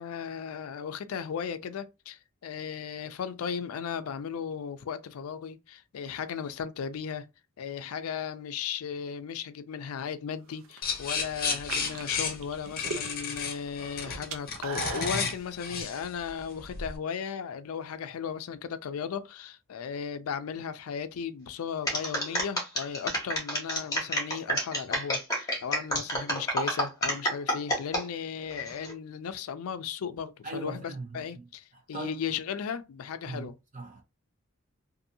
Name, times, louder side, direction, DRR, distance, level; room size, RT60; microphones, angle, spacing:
voice 1, 0.0-7.3 7.6-33.6, left 7 dB, 80° left, 0.4 m, -36 dB
sound 1, 10.5-11.0 11.5-13.4 13.7-15.3, right 4 dB, 70° right, 0.6 m, -37 dB
sound 2, 10.8-17.0, left 5 dB, 45° left, 0.7 m, -33 dB
sound 3, 21.9-28.0 28.5-28.9, equal, 15° left, 1.2 m, -29 dB
voice 2, 30.4-31.4 31.9-32.2 33.3-33.5 33.7-34.0, right 2 dB, 35° right, 0.9 m, -39 dB
2.6 x 2.6 x 2.6 m
head